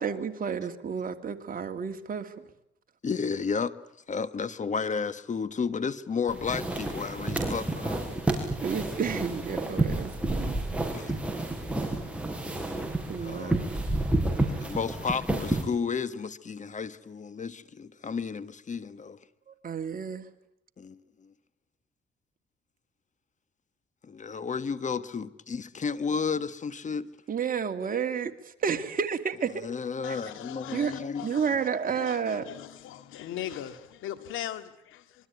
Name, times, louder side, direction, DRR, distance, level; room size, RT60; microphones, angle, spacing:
voice 1, 0.0-2.3 8.6-10.6 11.0-11.1 13.1-13.9 14.5-14.6 19.5-20.3 27.3-29.6 30.1-30.2 30.7-30.9 31.2-32.5, right 6 dB, 45° right, 2.7 m, -31 dB
voice 2, 3.0-3.7 4.1-8.0 10.9-11.1 13.2-13.6 14.5-19.2 20.8-21.3 24.0-27.1 29.6-31.3, left 5 dB, 40° left, 1.4 m, -32 dB
sound 1, 6.3-15.6, right 2 dB, 5° right, 6.3 m, -30 dB
voice 3, 30.0-35.0, left 11 dB, 90° left, 2.1 m, -40 dB
25.5 x 23.5 x 9.4 m
cardioid pair, 90°, 20 cm